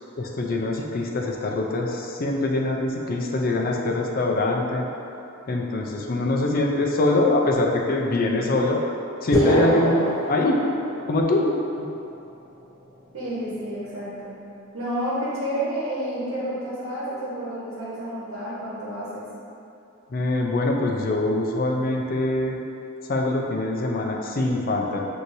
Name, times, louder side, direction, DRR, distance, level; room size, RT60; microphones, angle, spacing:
voice 1, 0.2-4.9 5.5-8.8 9.2-10.6 11.1-11.9 20.1-22.6 23.1-25.1, left 2 dB, 45° left, 0 dB, 0.4 m, -23 dB
sound 1, 9.3-11.3, equal, 15° left, 0.9 m, -23 dB
voice 2, 13.1-14.4 14.7-19.2, right 1 dB, 75° right, -9 dB, 1.1 m, -30 dB
6.1 x 2.7 x 2.6 m, 2.7 s
head